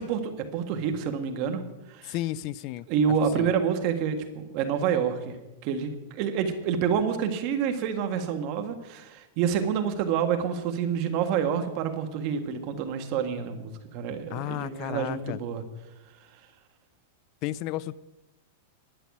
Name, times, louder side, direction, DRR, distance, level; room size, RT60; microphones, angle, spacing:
voice 1, 0.0-1.6 1.9-2.1 2.9-5.4 5.6-15.6, right 7 dB, 40° right, 6 dB, 1.6 m, -28 dB
voice 2, 2.1-2.9 3.3-3.5 14.3-15.4 17.4-17.9, left 15 dB, 40° left, 19 dB, 0.3 m, -32 dB
11.5 x 6.6 x 9.4 m, 1.0 s
supercardioid pair, 150°, 0 cm